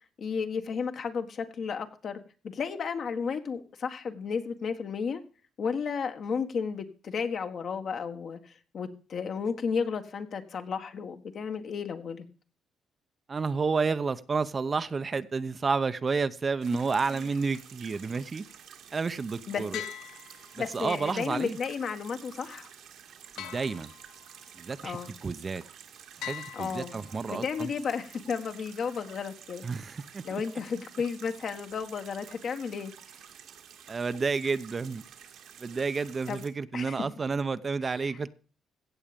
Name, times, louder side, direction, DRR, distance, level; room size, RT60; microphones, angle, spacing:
voice 1, 0.2-5.2 5.6-12.2 17.1-17.2 19.5-19.8 20.6-22.7 24.8-25.1 26.5-26.9 27.3-29.6 30.2-32.9 36.3-36.4 36.7-37.0, left 6 dB, 55° left, 7 dB, 1.6 m, -33 dB
voice 2, 13.3-18.4 18.9-19.8 20.5-21.6 23.4-23.9 24.6-25.6 26.2-27.7 29.6-30.2 33.9-35.0 35.6-38.3, right 4 dB, 35° right, 12 dB, 0.7 m, -30 dB
sound 1, 16.6-36.5, right 8 dB, 80° right, 2.2 m, -50 dB
sound 2, 19.7-21.0 23.4-24.5 26.2-27.4, left 11 dB, 85° left, 0.7 m, -42 dB
16.0 x 7.2 x 5.2 m, 0.38 s
cardioid pair, 90°, 0 cm